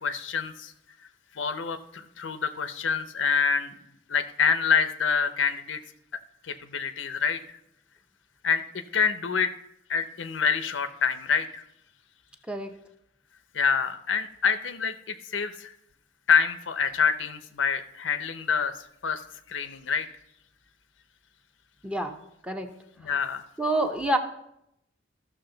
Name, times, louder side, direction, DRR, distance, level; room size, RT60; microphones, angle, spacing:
voice 1, 0.0-0.7 1.3-3.8 4.1-5.8 6.4-7.6 8.4-8.6 8.9-9.5 9.9-11.6 13.5-15.7 16.3-18.8 19.0-19.2 19.5-20.1 23.0-23.5, left 6 dB, 85° left, 11 dB, 0.6 m, -26 dB
voice 2, 21.8-22.2 22.4-22.7 23.0-23.3 23.6-24.2, right 1 dB, 5° right, 5 dB, 0.7 m, -28 dB
13.5 x 6.2 x 3.9 m, 0.79 s
head